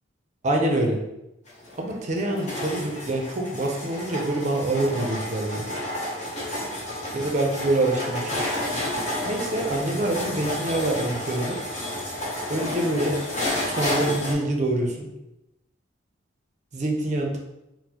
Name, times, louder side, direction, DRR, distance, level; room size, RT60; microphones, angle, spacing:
voice 1, 0.4-1.0 1.8-5.7 7.1-8.4 9.2-11.6 12.5-13.2 13.6-15.1 16.7-17.4, right 1 dB, 40° right, 2 dB, 0.5 m, -25 dB
sound 1, 1.5-14.3, left 1 dB, 40° left, 0.8 m, -31 dB
4.1 x 2.0 x 2.8 m, 0.91 s
head